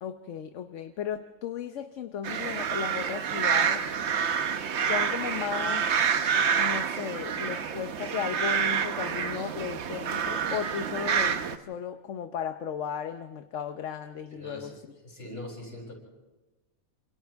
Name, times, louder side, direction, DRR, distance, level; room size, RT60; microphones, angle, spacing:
voice 1, 0.0-3.8 4.8-6.2 6.5-14.7, left 8 dB, 65° left, 8 dB, 1.1 m, -35 dB
sound 1, 2.2-11.6, right 7 dB, 55° right, 1.1 m, -28 dB
voice 2, 14.3-14.8 15.0-15.9, left 1 dB, 45° left, -1 dB, 7.1 m, -42 dB
28.0 x 27.0 x 3.5 m, 1.1 s
omnidirectional pair, 1.5 m